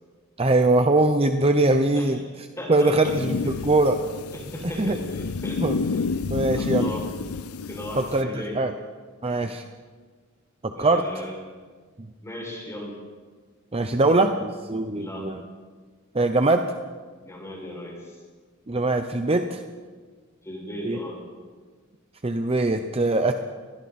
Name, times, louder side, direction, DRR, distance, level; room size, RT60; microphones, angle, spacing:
voice 1, 0.4-2.2 2.7-4.0 4.8-5.0 5.6-5.7 6.3-6.9 8.0-8.7 9.2-9.6 10.6-11.1 13.7-15.4 16.1-16.7 18.7-19.6 20.8-21.0 22.2-23.3, right 2 dB, 25° right, 7 dB, 0.8 m, -22 dB
voice 2, 2.6-3.1 3.4-3.6 4.3-6.0 6.6-7.1 7.7-8.6 10.7-11.3 12.2-13.0 15.0-15.3 17.2-18.2 20.4-21.2, left 1 dB, 15° left, -1 dB, 6.5 m, -37 dB
sound 1, 3.0-8.2, left 4 dB, 85° left, 0.7 m, -30 dB
29.5 x 21.5 x 4.3 m, 1.5 s
head